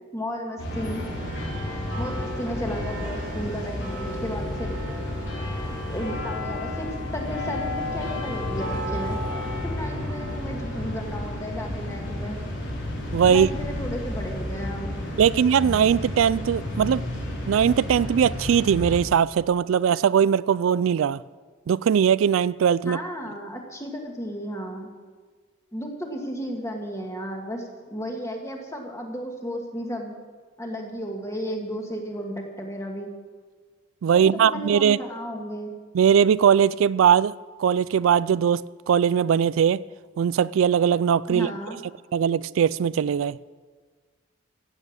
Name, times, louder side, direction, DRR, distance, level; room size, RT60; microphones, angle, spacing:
voice 1, 0.1-1.0 2.0-4.8 5.7-9.2 9.6-12.4 13.3-15.0 22.9-24.9 25.7-30.2 30.6-33.1 34.1-35.8 41.3-41.8, equal, 15° left, 2.0 m, -34 dB
sound 1, 0.6-19.0, left 1 dB, 65° left, 4.0 m, -31 dB
voice 2, 13.1-13.5 15.2-17.0 17.5-21.2 21.7-23.0 34.0-35.0 35.9-37.3 37.6-39.8 40.2-41.5 42.1-43.4, right 8 dB, 85° right, 0.3 m, -20 dB
15.0 x 7.9 x 8.8 m
head